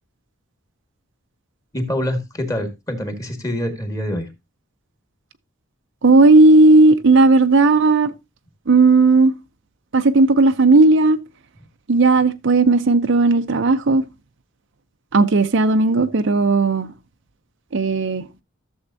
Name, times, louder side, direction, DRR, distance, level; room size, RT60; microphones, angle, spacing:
voice 1, 1.7-4.3, left 1 dB, 15° left, 1.6 m, -25 dB
voice 2, 6.0-8.1 8.7-9.3 9.9-11.2 11.9-14.0 15.1-16.9 17.7-18.3, right 3 dB, 60° right, 0.6 m, -14 dB
13.0 x 7.2 x 2.6 m
head